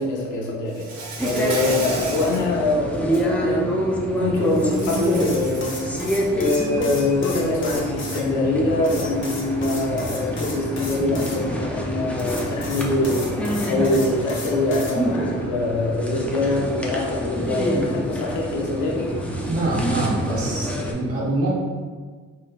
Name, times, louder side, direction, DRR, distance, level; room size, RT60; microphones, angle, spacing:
voice 1, 0.0-3.7 4.2-19.1, left 2 dB, 80° left, -3 dB, 0.8 m, -24 dB
Insect, 0.7-2.5 2.9-3.2 4.5-6.3, right 3 dB, 90° right, 0.8 m, -34 dB
sound 1, 1.2-20.9, equal, 5° left, 0.5 m, -27 dB
sound 2, 4.7-8.2 8.8-11.4 12.2-14.9, left 2 dB, 40° left, 0.9 m, -35 dB
voice 2, 19.4-21.5, right 2 dB, 50° right, -5 dB, 1.2 m, -24 dB
4.0 x 3.1 x 2.4 m, 1.5 s
cardioid pair, 90°, 30 cm